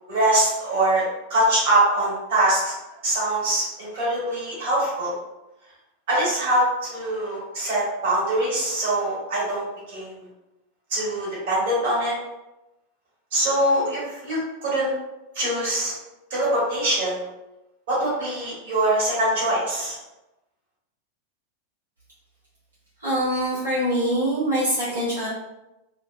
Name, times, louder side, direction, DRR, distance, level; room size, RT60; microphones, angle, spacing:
voice 1, 0.1-1.0 1.3-2.7 3.0-5.1 6.1-9.6 9.9-10.1 10.9-12.1 13.3-14.9 15.3-15.9 16.3-17.2 17.9-19.9, right 1 dB, 55° right, -7 dB, 1.4 m, -23 dB
voice 2, 23.0-25.3, equal, 80° right, -11 dB, 1.1 m, -24 dB
2.8 x 2.5 x 2.2 m, 0.96 s
figure-of-eight pair, 90°, 0 cm